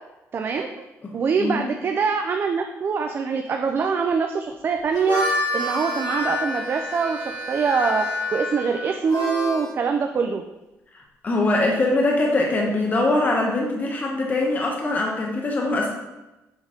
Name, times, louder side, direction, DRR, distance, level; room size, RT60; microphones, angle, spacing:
voice 1, 0.3-0.7 1.1-5.2 5.5-10.4, right 5 dB, 40° right, 4 dB, 0.4 m, -24 dB
voice 2, 1.0-1.7 11.2-15.9, left 2 dB, 30° left, -1 dB, 0.9 m, -22 dB
Harmonica, 4.8-9.7, left 1 dB, 85° left, 1.7 m, -28 dB
7.0 x 3.9 x 3.7 m, 1.0 s
cardioid pair, 130°, 6 cm